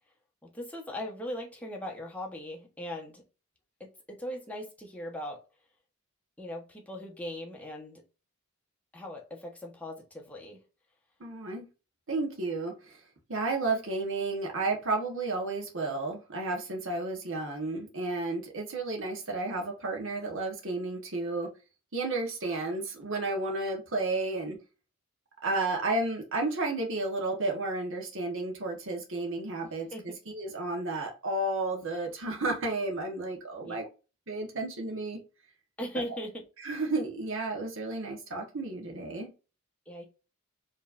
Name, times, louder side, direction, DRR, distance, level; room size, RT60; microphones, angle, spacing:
voice 1, 0.4-3.2 3.8-5.4 6.4-8.0 8.9-10.6 29.6-30.2 33.6-33.8 35.8-36.4 39.9-40.0, equal, 5° left, 1.0 m, -39 dB
voice 2, 11.2-11.7 12.1-13.0 13.3-21.5 21.9-24.6 25.4-33.8 34.3-35.2 36.6-39.3, right 2 dB, 65° right, 1.2 m, -32 dB
4.8 x 3.1 x 2.5 m
head